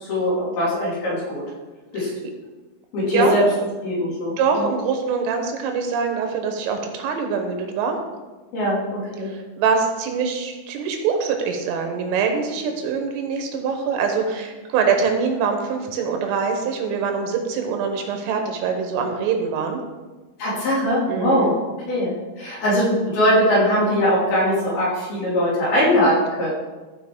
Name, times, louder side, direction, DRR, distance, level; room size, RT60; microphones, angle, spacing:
voice 1, 0.1-1.4 1.9-2.1 2.9-3.4 3.8-4.7 8.5-9.3 20.4-21.5 21.9-26.5, equal, 55° left, -7 dB, 4.0 m, -21 dB
voice 2, 4.4-8.0 9.3-19.8 21.1-21.5 22.5-22.6, right 5 dB, 80° right, 4 dB, 3.6 m, -24 dB
14.0 x 5.6 x 3.7 m, 1.2 s
omnidirectional pair, 5.8 m